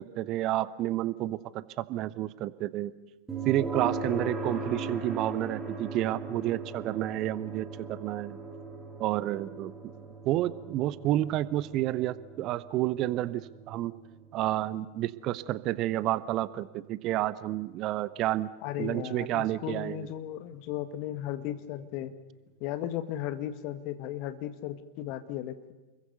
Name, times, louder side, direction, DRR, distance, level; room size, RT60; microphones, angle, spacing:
voice 1, 0.0-2.9 3.4-8.4 9.0-9.9 10.2-13.9 14.3-18.5 18.8-20.1, right 14 dB, 35° right, 17 dB, 0.8 m, -30 dB
sound 1, 3.3-18.2, right 3 dB, 15° right, 3.5 m, -40 dB
voice 2, 18.6-22.1 22.6-25.7, left 12 dB, 45° left, 9 dB, 1.8 m, -36 dB
29.5 x 22.0 x 6.8 m, 1.2 s
figure-of-eight pair, 90°, 0 cm